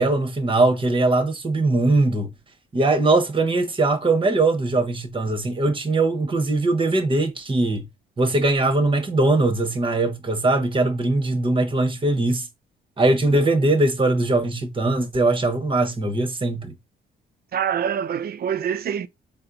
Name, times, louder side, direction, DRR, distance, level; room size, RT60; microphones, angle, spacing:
voice 1, 0.0-2.3 2.7-7.8 8.2-12.5 13.0-16.7, right 2 dB, 25° right, 1.0 m, -21 dB
voice 2, 17.5-19.1, right 8 dB, 50° right, 0.5 m, -25 dB
4.3 x 2.1 x 3.8 m
cardioid pair, 90°, 20 cm